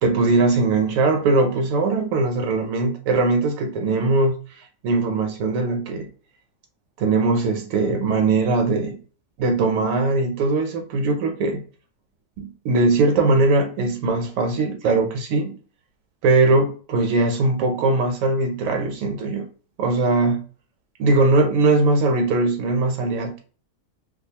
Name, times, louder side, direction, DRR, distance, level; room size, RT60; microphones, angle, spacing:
voice 1, 0.0-4.4 4.8-6.1 7.0-9.0 9.4-11.6 12.4-15.5 16.2-19.4 19.8-20.4 21.0-23.4, right 3 dB, 80° right, 1.0 m, -20 dB
2.5 x 2.3 x 2.7 m
omnidirectional pair, 1.4 m